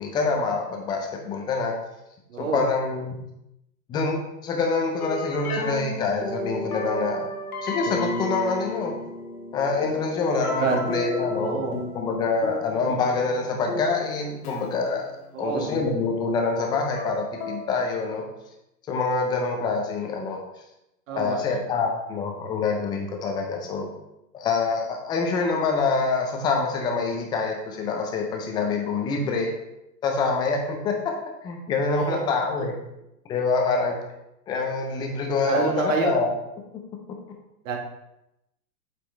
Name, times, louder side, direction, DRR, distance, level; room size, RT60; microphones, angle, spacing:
voice 1, 0.0-1.7 2.4-3.1 3.9-7.2 7.6-8.9 9.5-11.6 11.9-18.2 18.9-20.4 21.1-23.9 24.3-29.5 30.0-31.0 31.4-32.7 33.3-34.0 34.5-36.3, left 4 dB, 10° left, 2 dB, 0.5 m, -26 dB
voice 2, 2.3-2.6 10.6-10.9 11.4-11.8 15.3-15.7 21.1-21.6 31.9-32.2 35.4-36.2 37.6-37.8, right 5 dB, 55° right, 0 dB, 1.5 m, -27 dB
sound 1, 5.0-17.7, left 2 dB, 70° left, 1.7 m, -33 dB
8.1 x 4.2 x 3.2 m, 0.87 s
hypercardioid pair, 120°, 47 cm